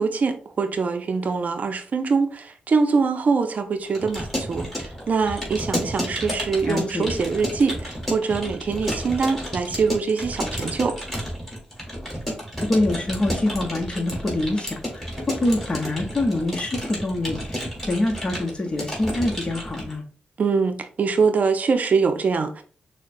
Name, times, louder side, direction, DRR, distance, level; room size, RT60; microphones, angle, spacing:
voice 1, 0.0-10.9 20.4-22.6, right 5 dB, 55° right, 0.5 m, -23 dB
Keyboard (musical) / Computer keyboard, 3.9-19.9, equal, 5° left, 1.9 m, -31 dB
voice 2, 6.7-7.1 12.6-20.1, left 2 dB, 35° left, 0.9 m, -25 dB
6.3 x 2.1 x 2.6 m
cardioid pair, 75°, 3 cm